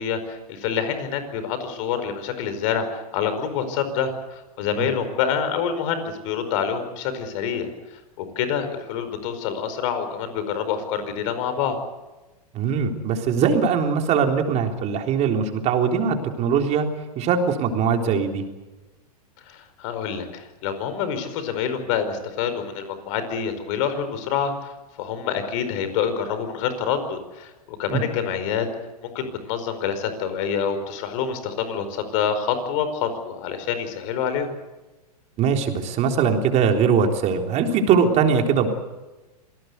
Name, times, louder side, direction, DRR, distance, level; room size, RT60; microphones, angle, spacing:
voice 1, 0.0-7.7 8.2-11.8 19.4-24.7 25.0-28.7 29.0-34.5, left 7 dB, 55° left, 10 dB, 5.0 m, -27 dB
voice 2, 12.5-16.9 17.2-18.4 27.9-28.0 35.4-38.7, right 6 dB, 35° right, 4 dB, 3.7 m, -21 dB
26.5 x 18.5 x 8.2 m, 1.1 s
hypercardioid pair, 115°, 20 cm